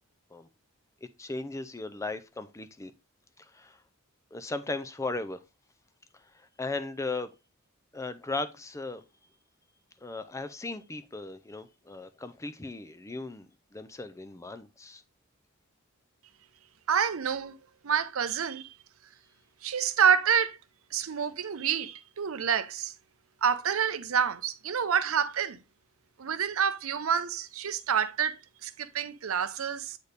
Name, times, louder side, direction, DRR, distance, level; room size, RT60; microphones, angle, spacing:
voice 1, 1.2-2.9 3.4-3.8 4.3-5.4 6.1-7.3 7.9-9.0 10.0-15.0, left 3 dB, 15° left, 0.4 m, -37 dB
voice 2, 16.9-17.6 17.8-18.7 19.6-20.6 20.9-22.9 23.4-25.6 26.2-30.0, right 7 dB, 70° right, 0.6 m, -28 dB
8.1 x 4.1 x 3.3 m
head